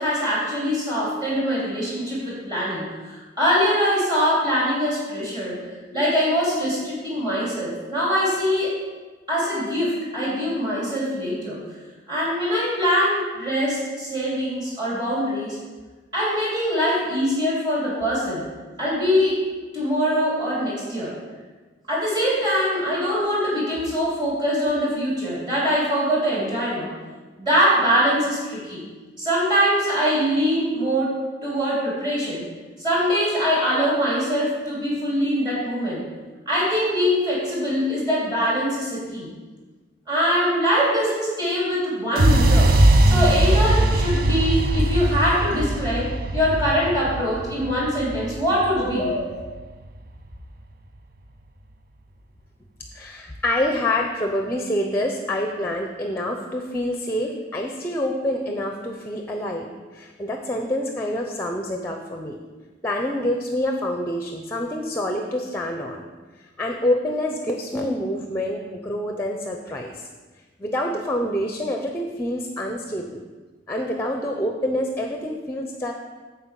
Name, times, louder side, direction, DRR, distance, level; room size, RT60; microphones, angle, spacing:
voice 1, 0.0-5.6 5.9-8.8 9.3-11.6 12.1-15.6 16.1-18.4 18.8-19.5 19.7-21.1 21.9-26.9 27.4-28.8 29.2-32.4 32.8-36.0 36.4-39.3 40.1-42.7 43.0-49.3, equal, 25° right, -7 dB, 3.2 m, -23 dB
sound 1, 42.2-50.1, right 1 dB, 50° right, 0.5 m, -20 dB
voice 2, 52.9-62.4 62.8-66.0 66.6-70.0 70.6-73.2 73.7-75.9, left 1 dB, 10° left, 3 dB, 0.6 m, -27 dB
9.0 x 4.5 x 7.4 m, 1.3 s
head